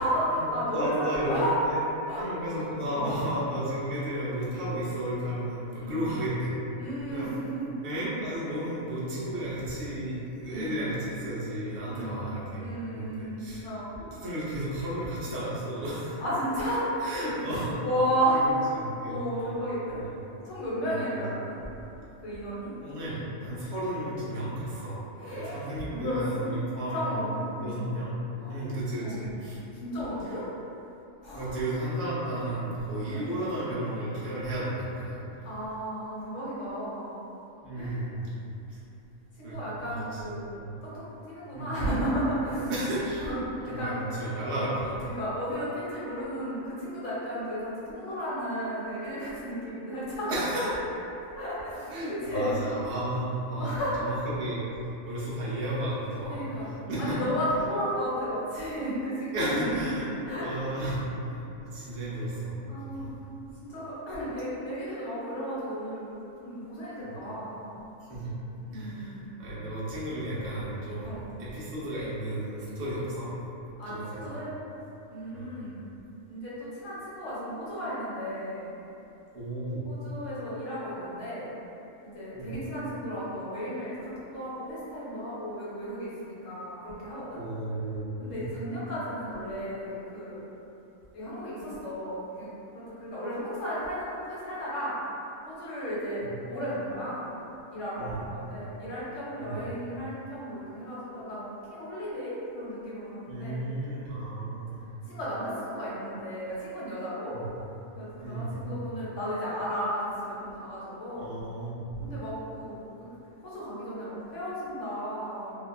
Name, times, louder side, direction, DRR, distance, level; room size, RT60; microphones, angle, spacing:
voice 1, 0.0-1.5 2.1-2.3 2.9-3.2 5.8-6.0 6.8-7.7 10.5-10.9 11.9-12.2 12.5-13.9 16.2-17.3 17.8-18.7 19.0-20.0 20.4-21.6 22.2-22.7 25.2-26.6 26.9-27.8 28.3-28.7 29.0-29.2 29.7-30.5 31.2-31.6 33.1-33.3 35.4-37.2 37.8-38.1 38.7-38.8 39.4-40.5 40.8-42.7 43.2-43.4 43.7-44.0 44.5-44.7 45.0-50.3 51.3-52.5 53.6-54.2 56.3-56.7 57.0-59.7 60.3-60.5 61.8-61.9 62.7-67.7 68.7-69.3 71.0-71.2 73.8-74.5 75.1-75.9 76.3-78.7 79.9-81.5 82.0-87.4 88.2-90.4 91.1-92.5 92.7-95.0 95.5-97.3 97.7-103.6 105.0-107.4 108.0-111.3 112.0-113.1 113.4-115.5, equal, 70° left, -9 dB, 1.1 m, -33 dB
voice 2, 0.7-1.8 2.2-6.5 7.1-7.3 7.8-13.6 14.0-16.2 17.0-17.7 18.3-18.4 18.7-19.5 20.8-21.2 22.8-25.0 25.3-27.3 27.6-28.2 28.4-29.6 30.2-30.3 31.3-35.2 37.6-38.3 39.4-40.2 40.5-40.7 41.5-41.7 42.7-43.3 43.7-45.2 50.3-50.7 51.9-53.7 54.0-54.6 55.1-57.2 59.3-60.1 60.4-61.0 61.6-63.2 67.0-67.2 68.1-68.3 68.7-71.1 71.4-73.3 73.9-74.4 75.3-75.6 79.3-79.8 82.3-82.6 87.3-88.5 96.2-96.3 98.0-98.2 99.4-99.7 103.3-104.8 107.3-107.5 108.2-108.6 111.2-111.9, right 1 dB, 60° right, -8 dB, 0.9 m, -33 dB
2.8 x 2.2 x 2.2 m, 2.9 s
omnidirectional pair, 1.4 m